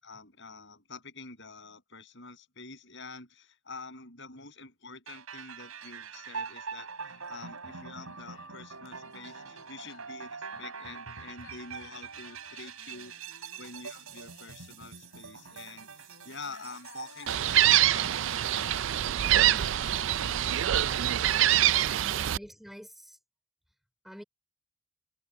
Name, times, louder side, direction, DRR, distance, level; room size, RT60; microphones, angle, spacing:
voice 1, 0.0-13.1 13.6-19.0 19.2-21.9, left 4 dB, 55° left, 7.4 m, -47 dB
sound 1, 5.1-18.8, right 5 dB, 85° right, 5.0 m, -44 dB
sound 2, 7.0-18.1, left 5 dB, 75° left, 4.0 m, -56 dB
Gull seagull, 17.3-22.4, right 12 dB, 60° right, 0.4 m, -25 dB
voice 2, 22.1-23.2 24.0-24.2, equal, ahead, 3.6 m, -47 dB
head